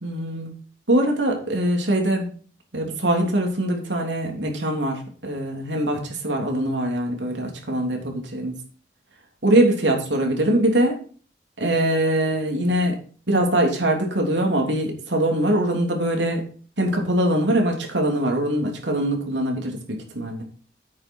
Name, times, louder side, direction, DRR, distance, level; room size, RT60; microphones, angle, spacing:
voice 1, 0.0-0.5 0.9-2.3 2.7-8.5 9.4-10.9 11.6-13.0 13.3-16.4 16.8-20.4, right 1 dB, 85° right, 2 dB, 3.2 m, -22 dB
9.3 x 8.8 x 4.6 m, 0.41 s
head